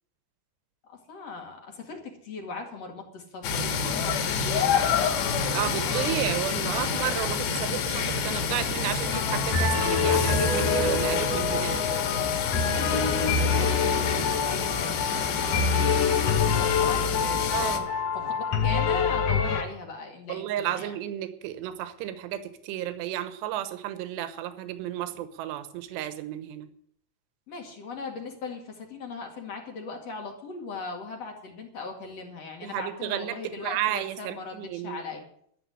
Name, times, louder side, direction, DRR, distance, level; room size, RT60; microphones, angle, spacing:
voice 1, 0.9-6.6 12.5-20.9 27.5-35.2, left 4 dB, 45° left, 2 dB, 2.5 m, -39 dB
sound 1, 3.4-17.8, left 6 dB, 75° left, 3.6 m, -28 dB
voice 2, 5.5-11.8 17.5-17.9 20.3-26.7 32.6-33.4 33.6-35.0, right 12 dB, 80° right, 11 dB, 3.1 m, -32 dB
sound 2, 9.1-19.6, left 5 dB, 90° left, 1.4 m, -26 dB
12.5 x 7.7 x 9.9 m, 0.66 s
omnidirectional pair, 5.1 m